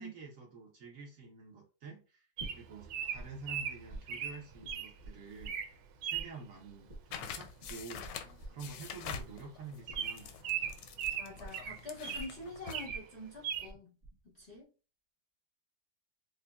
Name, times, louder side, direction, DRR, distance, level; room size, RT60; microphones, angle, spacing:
voice 1, 0.0-8.1 8.5-10.7, right 4 dB, 55° right, 1.1 m, -49 dB
sound 1, 2.4-3.3 3.5-5.9 6.1-13.8 14.0-14.6, right 2 dB, 20° right, 0.8 m, -49 dB
Bird vocalization bird call bird song, 2.4-4.9 5.4-5.7 6.0-6.3 7.8-8.0 8.3-8.4 8.6-8.8 9.3-9.4 9.9-12.3 12.7-13.0 13.4-13.7, right 9 dB, 85° right, 1.3 m, -38 dB
sound 2, 7.1-12.9, left 7 dB, 85° left, 1.2 m, -46 dB
voice 2, 11.2-13.9 14.3-14.7, left 1 dB, 50° left, 0.8 m, -46 dB
5.1 x 2.2 x 2.3 m
omnidirectional pair, 1.9 m